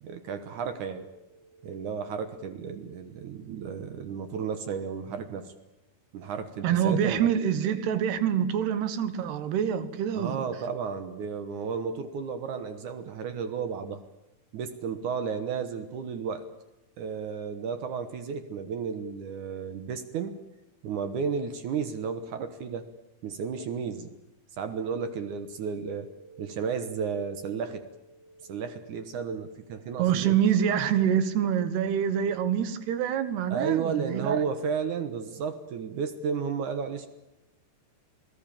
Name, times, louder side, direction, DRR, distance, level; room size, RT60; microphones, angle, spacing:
voice 1, 0.0-5.5 6.1-7.3 10.1-14.0 14.5-16.5 17.0-20.4 20.8-22.9 23.2-24.1 24.6-30.4 33.5-37.1, right 6 dB, 65° right, 2.3 m, -33 dB
voice 2, 6.6-10.4 30.0-34.4, right 9 dB, 90° right, 3.5 m, -26 dB
27.5 x 16.5 x 8.9 m
omnidirectional pair, 4.6 m